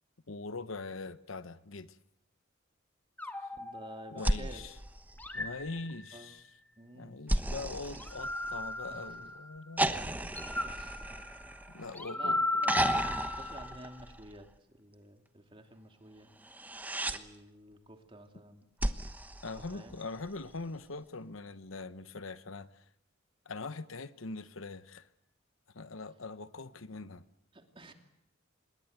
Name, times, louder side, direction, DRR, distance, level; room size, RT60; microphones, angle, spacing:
voice 1, 0.3-2.0 3.4-3.5 4.1-4.8 5.3-6.5 6.9-10.3 11.7-12.8 19.4-22.8 23.4-25.1 25.7-27.2, left 3 dB, 75° left, 1.0 m, -42 dB
sound 1, 3.2-4.6 5.2-6.5 7.9-9.7 10.3-13.9, left 2 dB, 10° left, 1.7 m, -37 dB
voice 2, 3.5-4.7 6.1-6.3 6.8-7.2 8.9-9.1 10.6-11.2 11.7-11.8 12.1-12.8 13.1-14.5 14.7-16.3 17.0-18.6 19.7-19.9 27.5-27.9, right 1 dB, 25° right, 2.8 m, -51 dB
sound 2, 4.2-5.8 7.3-9.0 9.8-12.0 12.6-14.5 16.4-17.2 18.8-20.3 21.8-21.9, right 1 dB, 10° right, 1.0 m, -34 dB
27.0 x 21.5 x 8.2 m
head